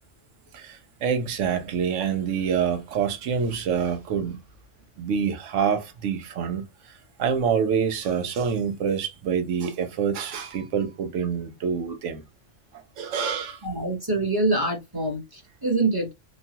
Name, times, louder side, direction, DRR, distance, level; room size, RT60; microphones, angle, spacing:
voice 1, 1.0-4.4 5.0-6.6 7.2-12.2 13.0-13.6, right 7 dB, 75° right, 1.0 m, -26 dB
voice 2, 13.6-16.1, right 2 dB, 20° right, 0.8 m, -25 dB
3.0 x 2.2 x 2.8 m
omnidirectional pair, 1.3 m